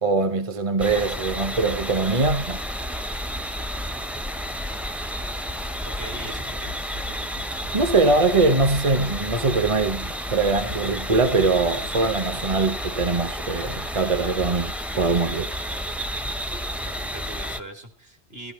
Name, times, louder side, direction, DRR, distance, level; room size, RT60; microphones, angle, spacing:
voice 1, 0.0-2.6 7.7-15.5, right 3 dB, 30° right, 1.1 m, -22 dB
sound 1, 0.8-17.6, equal, ahead, 0.6 m, -31 dB
voice 2, 5.9-6.7 16.9-18.5, right 2 dB, 60° right, 3.8 m, -40 dB
sound 2, 6.2-12.0, left 1 dB, 90° right, 2.2 m, -44 dB
15.0 x 14.5 x 4.5 m
omnidirectional pair, 1.1 m